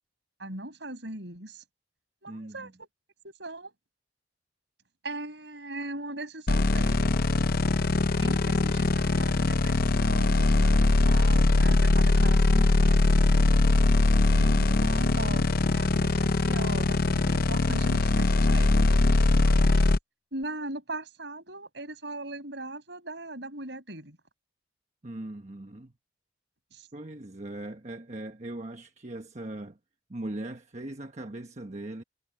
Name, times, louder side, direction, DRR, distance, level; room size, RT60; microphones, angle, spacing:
voice 1, 0.4-1.6 2.2-2.9 3.2-3.7 5.0-7.2 8.2-13.7 14.3-19.8 20.3-24.2 26.7-26.9, right 2 dB, 65° right, 6.8 m, -39 dB
voice 2, 2.3-2.7 25.0-25.9 26.9-29.8 30.1-32.0, right 1 dB, 35° right, 1.2 m, -40 dB
sound 1, 6.5-20.0, left 2 dB, 50° left, 0.7 m, -22 dB
head